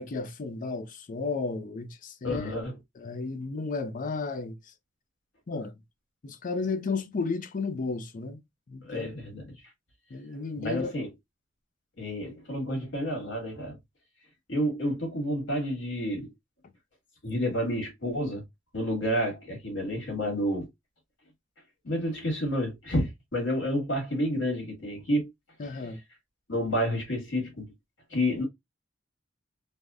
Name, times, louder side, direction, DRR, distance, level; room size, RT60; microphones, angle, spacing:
voice 1, 0.0-2.5 3.0-4.7 5.5-5.7 6.2-8.4 8.7-9.1 10.1-10.9 25.6-26.0, left 4 dB, 45° left, 0.4 m, -33 dB
voice 2, 2.2-2.7 8.8-9.5 10.6-11.1 12.0-13.8 14.5-16.3 17.2-18.4 18.7-20.7 21.8-25.3 26.5-27.7 28.1-28.4, equal, 85° left, 1.7 m, -30 dB
3.4 x 2.1 x 2.4 m
head